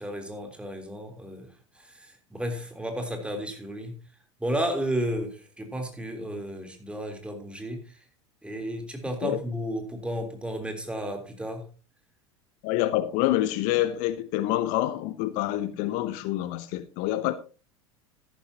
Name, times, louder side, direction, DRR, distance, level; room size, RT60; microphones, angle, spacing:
voice 1, 0.0-1.5 1.8-3.9 4.4-7.9 8.4-11.6, equal, 5° right, 3.4 m, -33 dB
voice 2, 12.6-17.3, left 14 dB, 55° left, 0.8 m, -27 dB
13.5 x 11.5 x 2.8 m
figure-of-eight pair, 75°, 16 cm